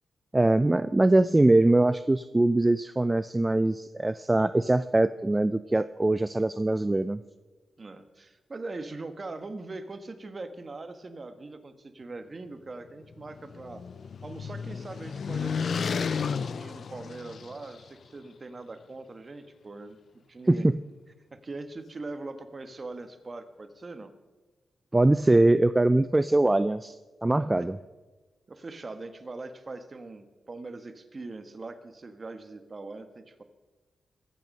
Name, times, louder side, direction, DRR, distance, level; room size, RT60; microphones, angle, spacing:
voice 1, 0.3-7.2 20.5-20.8 24.9-27.0 27.2-27.8, right 2 dB, 15° right, 14 dB, 0.3 m, -22 dB
voice 2, 7.8-13.8 14.2-20.0 20.3-20.7 21.3-24.1 27.4-27.7 28.5-33.4, right 3 dB, 35° right, 9 dB, 1.3 m, -41 dB
sound 1, 13.0-17.8, left 6 dB, 60° left, 0.4 m, -33 dB
22.5 x 9.1 x 5.4 m, 1.3 s
cardioid pair, 100°, 0 cm